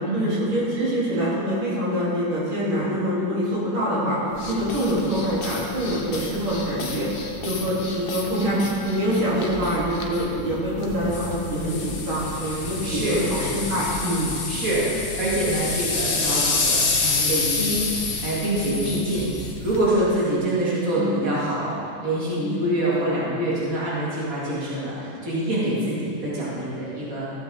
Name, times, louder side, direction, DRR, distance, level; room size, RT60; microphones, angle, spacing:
voice 1, 0.1-7.1 7.4-14.3 20.9-21.1 22.4-22.7 25.6-25.8, equal, 90° right, -8 dB, 3.8 m, -25 dB
sound 1, 4.3-19.9, left 3 dB, 40° left, 0.8 m, -29 dB
voice 2, 12.8-13.2 14.5-14.8 15.2-17.8 18.2-19.3 19.6-27.3, right 1 dB, 45° right, -8 dB, 2.9 m, -25 dB
15.0 x 7.9 x 4.4 m, 2.5 s
omnidirectional pair, 2.2 m